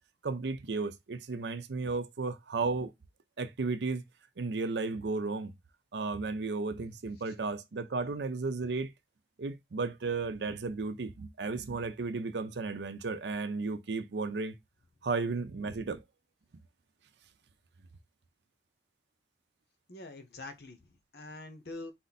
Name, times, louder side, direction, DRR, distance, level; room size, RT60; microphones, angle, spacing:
voice 1, 0.2-2.9 3.4-4.0 4.4-5.5 5.9-8.9 9.4-14.5 15.0-16.0, right 3 dB, 80° right, 0.6 m, -34 dB
voice 2, 19.9-21.9, left 2 dB, 65° left, 0.9 m, -45 dB
4.3 x 2.6 x 4.0 m
head